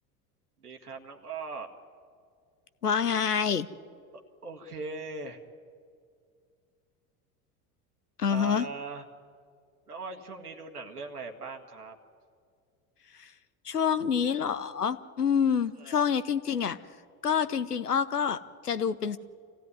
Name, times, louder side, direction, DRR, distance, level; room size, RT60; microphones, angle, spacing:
voice 1, 0.6-1.7 4.1-5.4 8.3-9.0 9.9-12.0 15.8-16.1, right 3 dB, 80° right, 4 dB, 1.8 m, -40 dB
voice 2, 2.8-3.7 8.2-8.7 13.1-13.3 13.6-16.8 17.2-19.2, left 7 dB, 85° left, 14 dB, 0.9 m, -27 dB
26.0 x 15.5 x 9.6 m, 2.3 s
figure-of-eight pair, 75°, 45 cm